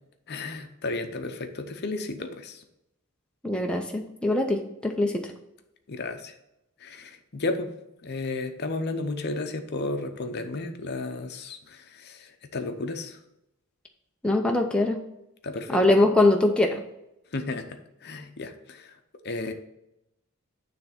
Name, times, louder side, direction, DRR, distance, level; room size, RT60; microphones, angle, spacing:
voice 1, 0.3-2.6 5.9-6.3 6.8-7.7 8.0-13.2 15.4-15.8 17.3-18.9 19.2-19.5, left 2 dB, 50° left, 7 dB, 0.7 m, -33 dB
voice 2, 3.4-5.2 14.2-15.0 15.7-16.8, left 2 dB, 5° left, 1 dB, 0.5 m, -22 dB
9.4 x 3.4 x 5.7 m, 0.86 s
head